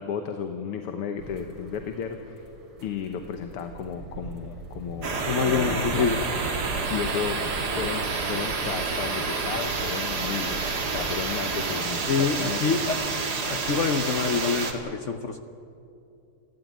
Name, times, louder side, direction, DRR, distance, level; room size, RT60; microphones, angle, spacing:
voice 1, 0.0-2.5 2.8-5.1 5.5-6.1 6.6-7.4 7.8-12.6, left 7 dB, 90° left, 6 dB, 2.1 m, -33 dB
sound 1, 1.2-11.1, right 3 dB, 65° right, 3.6 m, -41 dB
sound 2, 5.0-14.7, right 4 dB, 50° right, 2.4 m, -29 dB
voice 2, 5.3-6.2 12.1-13.0 13.5-15.4, left 5 dB, 70° left, 8 dB, 0.7 m, -26 dB
28.5 x 14.0 x 9.5 m, 2.7 s
omnidirectional pair, 2.4 m